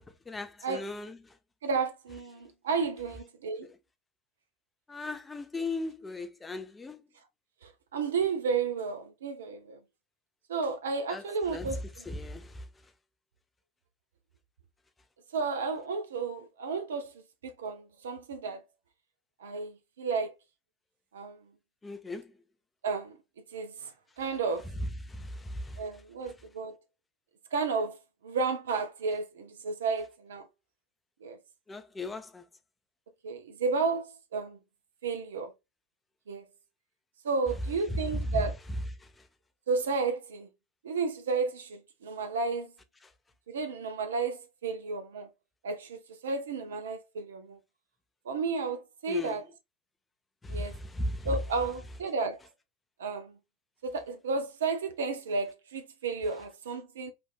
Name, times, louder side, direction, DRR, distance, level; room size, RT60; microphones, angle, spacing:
voice 1, 0.3-1.3 3.6-3.7 4.9-7.1 11.1-11.8 12.1-12.7 21.8-22.3 25.1-25.8 31.7-32.4 38.1-38.5 39.0-39.2 49.1-49.4 50.4-51.4, left 2 dB, 15° left, 0.5 m, -37 dB
voice 2, 1.6-3.7 7.6-9.8 10.5-12.1 15.3-17.1 17.4-18.6 19.4-20.3 21.1-21.4 22.8-23.2 23.5-23.9 24.2-24.7 25.8-26.8 27.5-28.0 28.2-30.5 31.2-31.4 33.2-34.6 35.0-35.5 36.3-36.5 37.2-38.5 39.7-40.5 40.8-42.7 43.5-45.3 45.6-47.6 48.3-49.4 50.5-50.7 51.2-52.4 53.0-53.4 53.8-57.1, right 4 dB, 75° right, 0.6 m, -32 dB
3.3 x 2.5 x 2.3 m
figure-of-eight pair, 80°, 0 cm